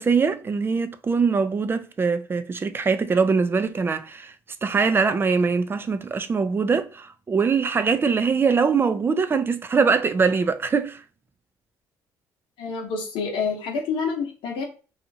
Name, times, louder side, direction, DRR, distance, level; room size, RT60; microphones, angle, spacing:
voice 1, 0.0-4.3 4.6-11.0, right 5 dB, 25° right, 0.4 m, -22 dB
voice 2, 12.6-14.6, left 5 dB, 75° left, 0.8 m, -28 dB
2.8 x 2.4 x 2.6 m
supercardioid pair, 80°, 8 cm